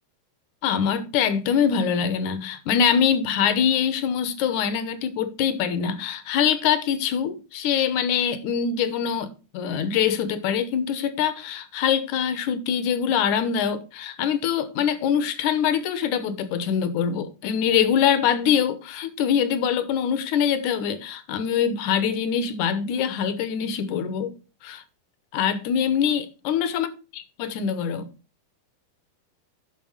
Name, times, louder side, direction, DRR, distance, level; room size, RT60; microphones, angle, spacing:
voice 1, 0.6-24.3 24.6-24.8 25.3-26.9 27.4-28.1, left 8 dB, 75° left, 2.3 m, -24 dB
9.3 x 6.3 x 4.7 m
omnidirectional pair, 3.6 m